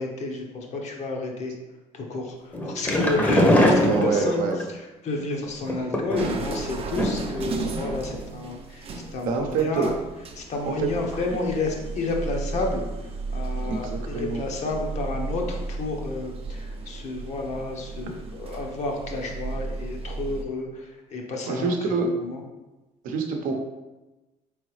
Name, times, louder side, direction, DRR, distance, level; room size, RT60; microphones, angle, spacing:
voice 1, 0.0-1.5 1.9-4.4 4.7-9.9 10.4-21.7 22.0-22.4, left 3 dB, 55° left, 1 dB, 0.9 m, -31 dB
sound 1, 2.5-4.6 5.6-6.5 7.0-7.4 7.7-7.8 8.1-8.2, left 1 dB, 10° left, 0.7 m, -22 dB
voice 2, 3.2-4.6 9.3-9.9 10.6-10.9 13.6-14.4 21.5-22.1 23.0-23.5, right 4 dB, 80° right, 3 dB, 0.7 m, -26 dB
sound 2, 6.2-20.5, right 3 dB, 45° right, 0.6 m, -34 dB
3.9 x 3.3 x 3.2 m, 1.1 s
supercardioid pair, 85°, 14 cm